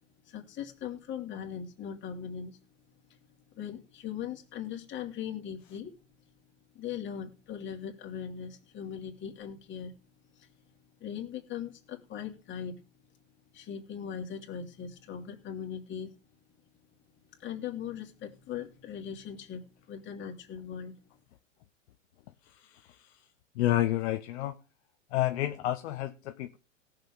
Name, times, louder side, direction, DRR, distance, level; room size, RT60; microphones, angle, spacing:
voice 1, 0.2-2.6 3.1-3.2 3.5-5.9 6.7-9.9 10.3-10.5 11.0-12.8 13.5-16.1 17.4-20.9, left 8 dB, 30° left, 2 dB, 2.9 m, -39 dB
voice 2, 22.5-23.1 23.5-24.6 25.1-26.6, left 14 dB, 60° left, 7 dB, 0.9 m, -30 dB
18.5 x 6.8 x 3.8 m, 0.32 s
hypercardioid pair, 110°, 38 cm